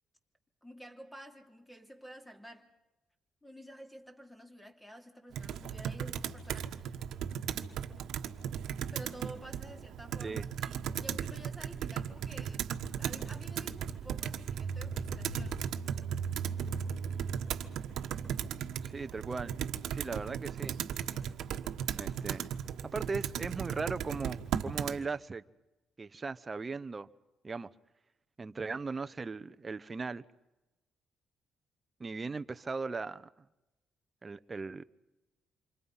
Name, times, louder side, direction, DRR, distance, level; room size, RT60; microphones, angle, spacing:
voice 1, 0.6-2.7 3.4-7.0 8.9-15.6, equal, 10° left, 4 dB, 3.0 m, -50 dB
Computer keyboard, 5.3-25.0, right 8 dB, 80° right, 1.3 m, -36 dB
voice 2, 18.8-19.5 19.9-20.8 22.0-22.5 22.9-25.4 26.0-27.1 27.4-27.7 28.4-30.2 32.0-33.3 34.2-34.8, right 4 dB, 30° right, 11 dB, 0.9 m, -38 dB
28.0 x 25.5 x 5.7 m, 1.0 s
cardioid pair, 90°, 0 cm